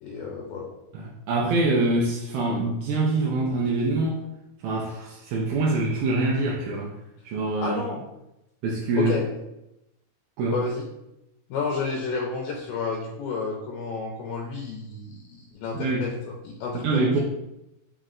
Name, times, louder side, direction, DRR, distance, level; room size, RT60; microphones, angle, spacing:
voice 1, 0.0-0.7 7.6-8.0 8.9-9.3 10.5-10.9 11.5-17.2, left 4 dB, 85° left, -1 dB, 2.1 m, -31 dB
voice 2, 0.9-4.2 4.6-6.9 7.2-7.8 8.6-9.1 10.4-10.6 15.7-16.1 16.8-17.2, right 2 dB, 80° right, -3 dB, 2.1 m, -25 dB
5.5 x 2.1 x 3.6 m, 0.89 s
omnidirectional pair, 3.7 m